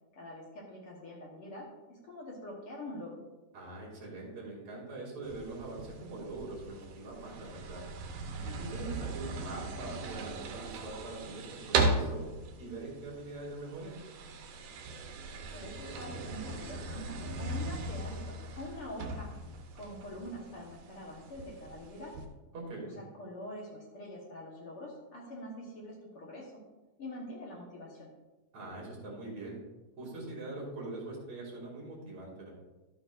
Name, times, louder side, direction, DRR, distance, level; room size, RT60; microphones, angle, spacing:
voice 1, 0.1-3.2 15.5-19.3 19.7-22.2 23.0-26.6 27.0-28.1, left 1 dB, 55° left, -3 dB, 1.9 m, -45 dB
voice 2, 3.5-7.8 8.4-12.3 12.6-13.9 22.5-22.9 28.5-29.6 30.0-32.5, right 2 dB, 60° right, -4 dB, 3.7 m, -43 dB
sound 1, 5.2-22.3, right 3 dB, 85° right, 2.4 m, -38 dB
12.5 x 8.1 x 2.6 m, 1.1 s
omnidirectional pair, 3.5 m